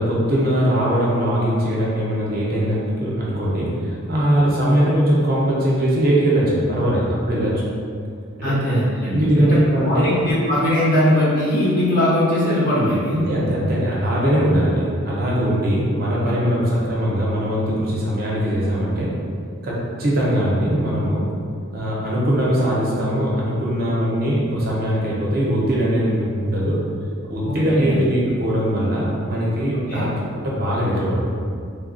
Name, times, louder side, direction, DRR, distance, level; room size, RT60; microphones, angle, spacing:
voice 1, 0.0-7.6 8.4-8.5 9.1-10.1 13.1-19.1 19.6-21.2 21.7-26.8 27.3-31.2, equal, 45° right, -5 dB, 0.6 m, -20 dB
voice 2, 8.4-9.6 9.8-13.1 27.4-28.0 29.9-30.0, left 1 dB, 40° left, -10 dB, 0.9 m, -20 dB
3.2 x 2.3 x 2.5 m, 2.3 s
head